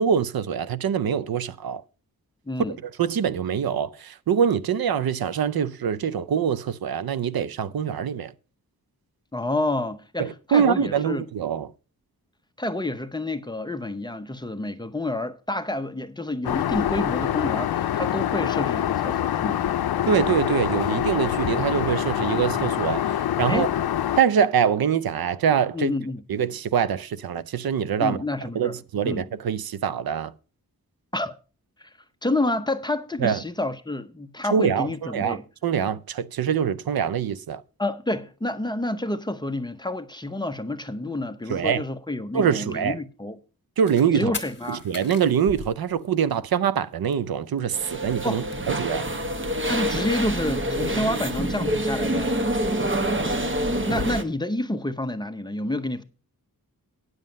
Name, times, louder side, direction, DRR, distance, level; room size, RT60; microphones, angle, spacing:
voice 1, 0.0-1.8 2.8-8.3 10.2-11.7 20.1-23.7 24.2-25.9 26.3-28.2 28.5-30.3 33.2-33.4 34.5-37.6 41.5-41.8 42.3-43.0 43.8-44.3 44.7-49.1, right 7 dB, 75° right, 0.6 m, -24 dB
voice 2, 2.5-2.8 9.3-11.2 12.6-19.7 23.5-23.7 25.7-26.2 28.0-28.8 29.0-29.2 31.1-31.4 31.8-31.9 32.2-35.4 37.8-43.4 44.1-44.8 48.2-48.5 49.6-52.4 53.9-56.0, left 1 dB, 10° left, 0.6 m, -29 dB
Aircraft, 16.4-24.2, left 11 dB, 90° left, 0.5 m, -25 dB
sound 1, 43.8-44.1 44.3-46.5 46.8-46.9 47.1-47.2 47.4-47.9 48.2-49.4 49.8-51.3, left 4 dB, 30° left, 1.6 m, -39 dB
sound 2, 47.7-54.2, right 1 dB, 35° right, 1.1 m, -26 dB
9.5 x 7.5 x 5.1 m
wide cardioid pair, 125°, 36 cm